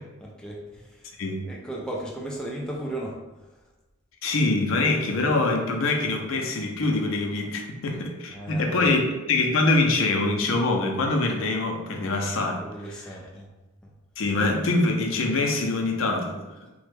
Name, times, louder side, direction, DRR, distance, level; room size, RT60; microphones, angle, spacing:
voice 1, 0.0-1.1 1.5-3.5 8.3-8.9 12.6-13.5, right 1 dB, 5° left, -4 dB, 0.4 m, -36 dB
voice 2, 4.2-9.0 9.3-12.6 14.2-16.5, left 2 dB, 70° left, 2 dB, 0.5 m, -24 dB
3.4 x 2.1 x 3.3 m, 1.1 s
head